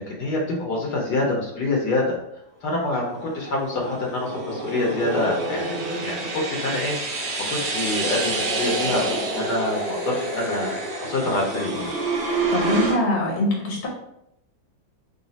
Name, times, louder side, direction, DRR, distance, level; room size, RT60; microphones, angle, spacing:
voice 1, 0.1-2.1 2.6-7.2 7.5-10.8 11.0-11.9, left 2 dB, 65° left, -2 dB, 1.2 m, -26 dB
sound 1, 2.9-13.0, right 2 dB, 60° right, 1.5 m, -28 dB
voice 2, 12.5-13.9, left 1 dB, 40° left, -3 dB, 0.9 m, -23 dB
3.9 x 2.3 x 3.9 m, 0.78 s
omnidirectional pair, 2.1 m